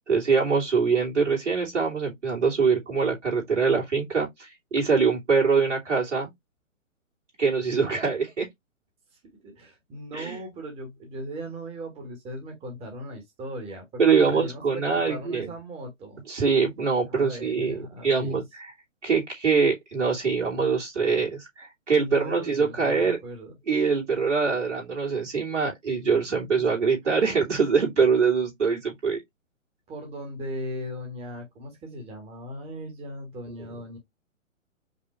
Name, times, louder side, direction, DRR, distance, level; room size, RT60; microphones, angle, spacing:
voice 1, 0.1-6.3 7.4-8.5 10.1-10.4 14.0-15.5 16.3-18.7 19.0-23.2 23.7-29.2, right 5 dB, 60° right, 2.7 m, -24 dB
voice 2, 9.4-16.2 17.0-18.4 22.0-23.5 26.3-26.4 29.9-34.0, equal, 15° right, 1.5 m, -38 dB
5.2 x 2.6 x 3.1 m
figure-of-eight pair, 125°, 39 cm